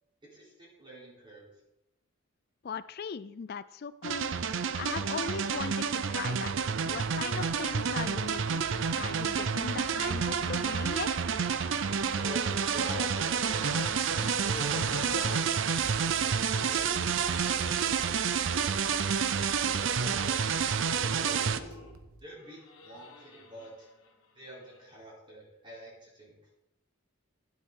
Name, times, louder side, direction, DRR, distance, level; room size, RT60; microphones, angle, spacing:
voice 1, 0.2-1.5 12.1-13.9 14.4-15.5 16.0-21.8 22.2-23.9 24.3-26.4, right 1 dB, 20° right, -6 dB, 3.6 m, -47 dB
voice 2, 2.6-4.3 4.8-6.5 6.9-8.7 9.0-11.1, left 6 dB, 45° left, 16 dB, 0.3 m, -38 dB
sound 1, 4.0-21.6, right 6 dB, 55° right, 0.5 m, -29 dB
sound 2, 6.5-22.2, right 2 dB, 75° right, 1.1 m, -52 dB
sound 3, 12.4-15.7 16.7-17.8 19.0-19.1 19.3-19.4 19.7-20.0 20.2-20.4 20.7-22.0 22.5-24.1 24.5-24.7, left 3 dB, 70° left, 1.6 m, -45 dB
12.0 x 8.1 x 3.8 m, 0.88 s
head